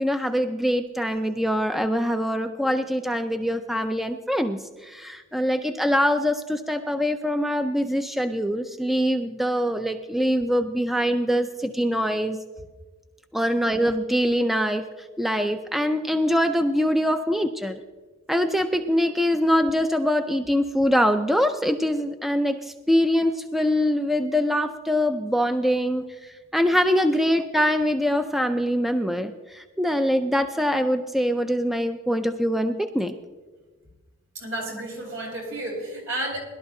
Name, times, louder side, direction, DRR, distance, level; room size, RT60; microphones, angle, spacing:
voice 1, 0.0-12.4 13.3-14.8 15.2-17.8 18.3-26.0 26.5-33.1, equal, ahead, 7 dB, 0.4 m, -23 dB
voice 2, 34.3-36.4, right 1 dB, 70° right, -1 dB, 4.2 m, -31 dB
21.5 x 12.0 x 2.7 m, 1.3 s
head